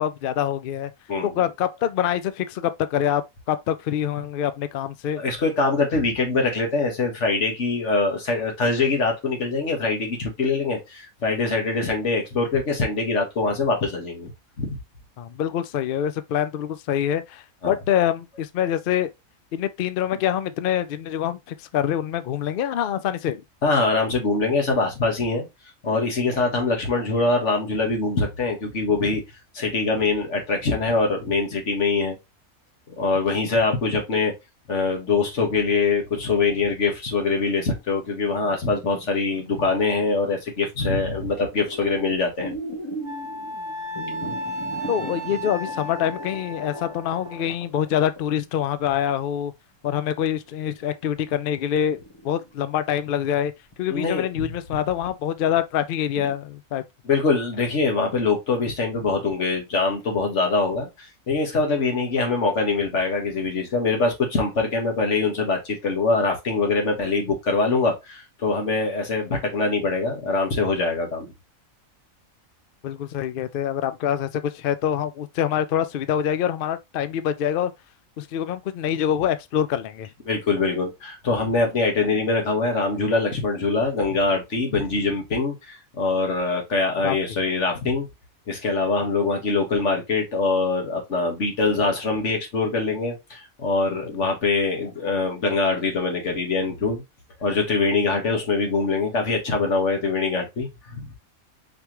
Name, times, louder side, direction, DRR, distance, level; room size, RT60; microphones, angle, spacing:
voice 1, 0.0-0.9 1.2-3.2 3.5-5.2 15.2-19.1 19.5-23.4 44.2-44.4 44.9-49.5 49.8-52.0 52.2-53.5 53.8-56.8 72.8-77.7 78.2-80.1 87.0-87.2, left 10 dB, 75° left, 0.5 m, -25 dB
voice 2, 1.1-1.4 5.2-14.3 14.6-14.8 17.6-17.7 23.6-25.5 25.8-29.2 29.5-32.2 33.0-34.3 34.7-42.5 53.9-54.5 57.0-71.3 80.3-88.1 88.5-97.0 97.4-101.1, left 3 dB, 55° left, 1.8 m, -23 dB
sound 1, 37.4-40.4 40.8-41.1 41.3-49.3 49.9-50.0 50.4-52.7 53.1-53.3 53.7-53.8 54.5-54.6 55.0-55.1 55.5-55.6 56.0-56.3, equal, 20° left, 1.2 m, -39 dB
Wind instrument woodwind instrument, 43.0-47.4, right 1 dB, 5° right, 0.8 m, -34 dB
5.0 x 3.4 x 2.9 m
omnidirectional pair, 1.5 m